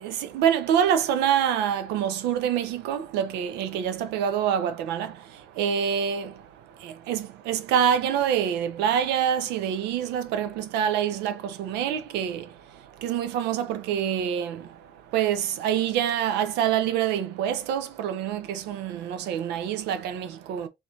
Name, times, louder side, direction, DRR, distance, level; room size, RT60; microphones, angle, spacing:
voice 1, 0.0-5.1 5.6-6.3 6.8-12.4 13.0-14.6 15.1-20.7, right 9 dB, 90° right, 0.6 m, -26 dB
3.7 x 3.1 x 2.7 m
cardioid pair, 110°, 17 cm